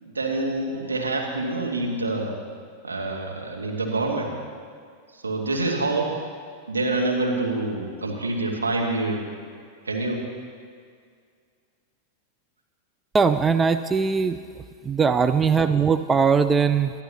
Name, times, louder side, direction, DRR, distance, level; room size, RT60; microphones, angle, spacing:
voice 1, 0.0-2.3 2.8-4.3 5.1-6.1 6.7-9.3 9.8-10.2, right 2 dB, 75° right, -1 dB, 2.0 m, -26 dB
voice 2, 13.1-14.4 14.8-16.9, right 5 dB, 15° right, 10 dB, 0.4 m, -20 dB
21.5 x 13.0 x 2.9 m, 2.1 s
figure-of-eight pair, 90°, 0 cm